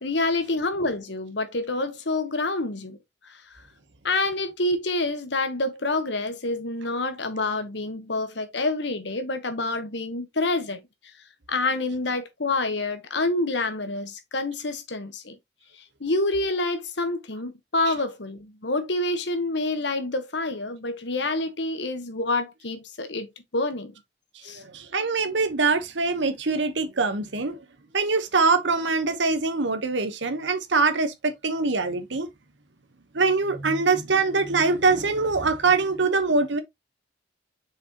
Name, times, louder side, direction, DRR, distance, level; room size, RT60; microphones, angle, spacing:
voice 1, 0.0-3.0 3.3-3.4 4.0-10.8 11.5-15.4 16.0-23.9 24.4-24.6, left 2 dB, 70° left, 1.4 m, -27 dB
voice 2, 24.5-27.6 27.9-32.3 33.1-36.6, right 4 dB, 80° right, 1.3 m, -23 dB
6.4 x 5.1 x 3.0 m
head